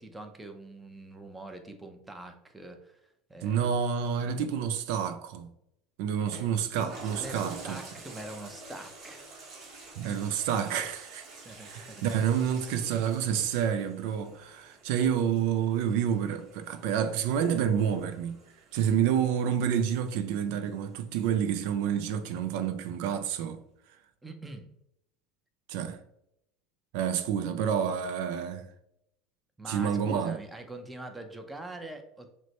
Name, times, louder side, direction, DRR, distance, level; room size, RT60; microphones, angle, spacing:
voice 1, 0.0-3.7 6.7-9.2 11.4-12.0 24.2-24.7 29.6-32.3, right 1 dB, 10° right, 0.6 m, -44 dB
voice 2, 3.4-5.5 6.0-7.8 10.0-11.3 11.6-18.4 18.7-23.6 25.7-26.0 26.9-28.7 29.7-30.4, right 8 dB, 75° right, 0.4 m, -29 dB
Toilet flush, 6.3-21.1 21.6-21.7, right 3 dB, 50° right, 1.1 m, -49 dB
6.0 x 2.1 x 2.9 m
supercardioid pair, 110°, 0 cm